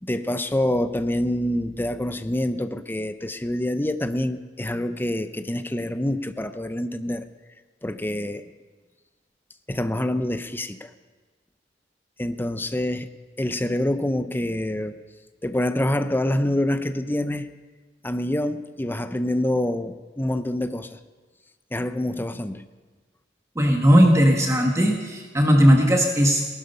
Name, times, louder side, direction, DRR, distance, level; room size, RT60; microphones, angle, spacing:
voice 1, 0.0-7.3 7.8-8.4 9.7-10.9 12.2-13.1 13.4-14.9 15.4-17.5 18.0-21.0 21.7-22.6, left 1 dB, 10° left, 10 dB, 0.6 m, -26 dB
voice 2, 23.5-26.4, equal, 15° right, 1 dB, 1.4 m, -17 dB
18.5 x 12.0 x 5.5 m, 1.4 s
head